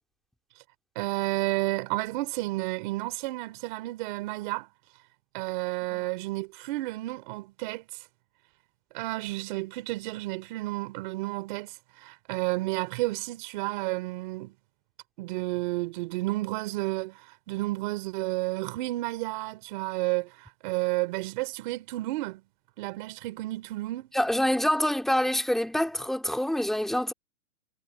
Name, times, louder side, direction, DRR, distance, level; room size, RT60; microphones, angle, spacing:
voice 1, 0.9-4.7 5.3-8.1 8.9-14.5 15.2-22.4 22.8-24.1, right 20 dB, 35° right, 3.2 m, -31 dB
voice 2, 24.1-27.1, left 1 dB, ahead, 2.4 m, -26 dB
hypercardioid pair, 165°, 42 cm